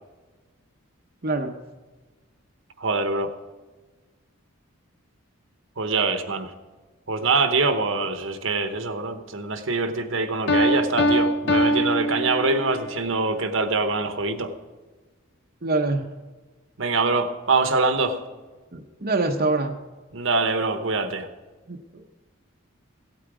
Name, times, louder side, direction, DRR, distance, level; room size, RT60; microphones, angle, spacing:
voice 1, 1.2-1.6 15.6-16.1 18.7-19.7 21.7-22.0, right 2 dB, 45° right, 1 dB, 0.8 m, -25 dB
voice 2, 2.8-3.3 5.8-6.5 7.1-14.5 16.8-18.2 20.1-21.3, right 3 dB, 65° right, 8 dB, 1.1 m, -24 dB
Piano, 10.5-12.9, equal, 55° left, 0.7 m, -22 dB
16.0 x 8.8 x 4.9 m, 1.3 s
head